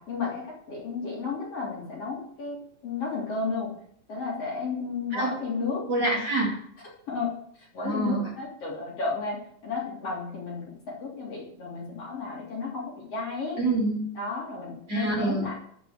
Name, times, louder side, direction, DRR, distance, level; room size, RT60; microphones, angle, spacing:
voice 1, 0.0-3.7 4.1-5.8 7.1-7.3 7.7-13.6 14.1-15.5, left 4 dB, 50° left, -4 dB, 4.0 m, -33 dB
voice 2, 5.9-6.6 7.8-8.2 13.6-14.0 14.9-15.5, right 2 dB, 35° right, -4 dB, 3.2 m, -26 dB
12.5 x 5.9 x 6.6 m, 0.63 s
omnidirectional pair, 3.7 m